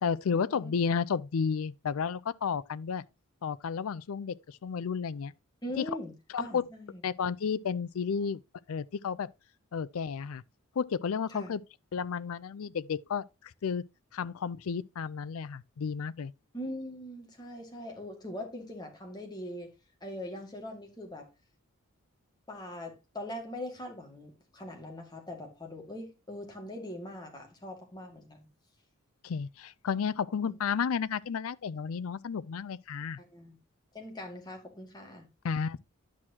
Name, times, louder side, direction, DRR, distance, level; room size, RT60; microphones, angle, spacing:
voice 1, 0.0-3.0 3.4-5.3 5.8-5.9 6.3-6.6 7.0-8.4 8.7-9.3 9.7-10.4 10.8-11.6 11.9-13.2 13.6-13.8 14.1-16.3 29.2-33.2 35.4-35.8, left 6 dB, 80° left, 0.4 m, -32 dB
voice 2, 5.6-7.0 11.3-11.5 16.5-19.7 20.0-21.3 22.5-28.5 30.4-30.6 33.2-33.6 33.9-35.3, left 1 dB, 20° left, 2.0 m, -41 dB
10.5 x 6.2 x 2.8 m
head